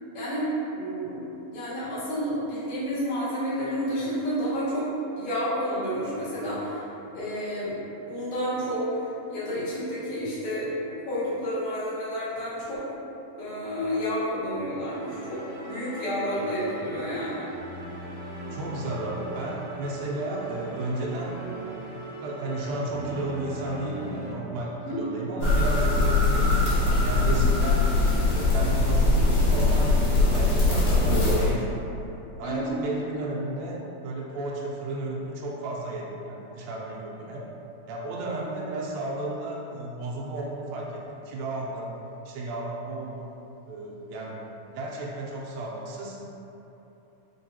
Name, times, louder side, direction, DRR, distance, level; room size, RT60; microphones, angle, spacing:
voice 1, 0.1-1.3 1.5-4.9 5.2-6.8 7.1-7.8 8.1-12.8 13.4-17.4 24.8-25.0 27.4-27.5 32.4-32.8, equal, 85° left, -12 dB, 1.0 m, -30 dB
sound 1, 14.8-24.3, right 1 dB, 65° right, 2.4 m, -40 dB
voice 2, 18.5-21.4 22.2-26.6 27.0-27.9 28.3-31.9 32.4-37.4 37.9-41.9 42.3-43.4 43.7-44.4 44.7-46.2, right 2 dB, 80° right, -4 dB, 2.3 m, -33 dB
sound 2, 25.4-31.5, left 2 dB, 65° left, 1.6 m, -21 dB
5.4 x 2.9 x 2.7 m, 3.0 s
omnidirectional pair, 4.2 m